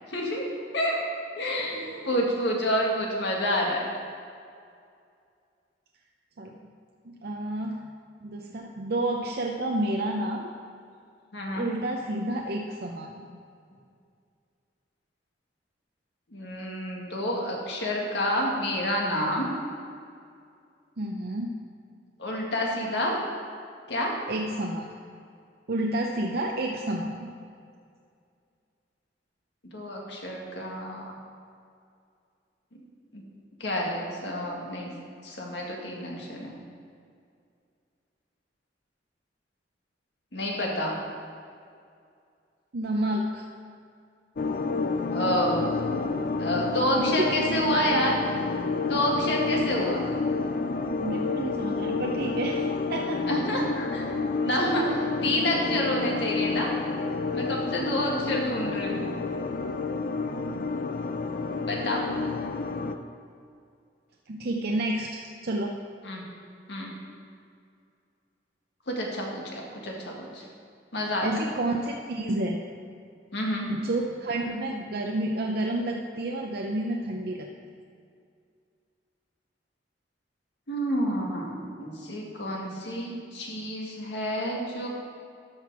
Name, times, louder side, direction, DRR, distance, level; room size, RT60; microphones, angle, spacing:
voice 1, 0.1-0.5 0.7-1.0 1.3-3.8 11.3-11.7 16.3-19.5 22.2-23.1 23.9-24.1 29.7-31.2 33.1-33.3 33.6-34.9 35.2-36.5 40.3-41.0 45.1-45.6 46.4-48.2 48.9-50.0 53.3-54.1 54.4-56.7 57.3-59.0 61.7-62.0 66.0-66.2 66.7-66.9 68.9-70.4 70.9-71.3 73.3-73.7 80.7-84.9, equal, 70° left, -2 dB, 1.9 m, -28 dB
voice 2, 1.6-2.2 6.4-6.7 7.0-7.9 8.2-10.5 11.5-13.3 21.0-21.5 24.3-25.0 25.7-27.3 42.7-43.5 47.0-47.5 51.0-53.2 64.3-65.8 71.2-72.6 73.7-77.5, right 1 dB, 60° right, 1 dB, 0.6 m, -30 dB
sound 1, 44.4-62.9, left 3 dB, 50° left, 0.5 m, -29 dB
13.0 x 6.0 x 4.8 m, 2.3 s
head